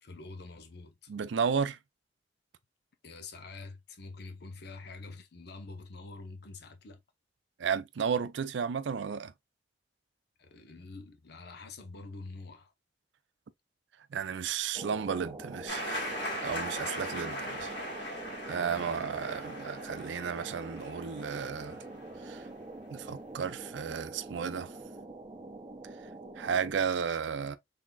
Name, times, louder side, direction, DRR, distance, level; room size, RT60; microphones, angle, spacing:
voice 1, 0.0-1.1 3.0-7.0 10.4-12.7 18.5-19.4, left 3 dB, 60° left, 0.8 m, -46 dB
voice 2, 1.1-1.8 7.6-9.3 14.1-16.1 16.4-17.7 18.5-21.8 22.2-22.4 22.9-24.8 26.4-27.6, right 6 dB, 75° right, 0.4 m, -33 dB
sound 1, 14.7-26.7, right 2 dB, 25° right, 0.6 m, -45 dB
sound 2, 15.7-22.3, equal, 80° left, 2.1 m, -39 dB
3.9 x 3.6 x 2.3 m
head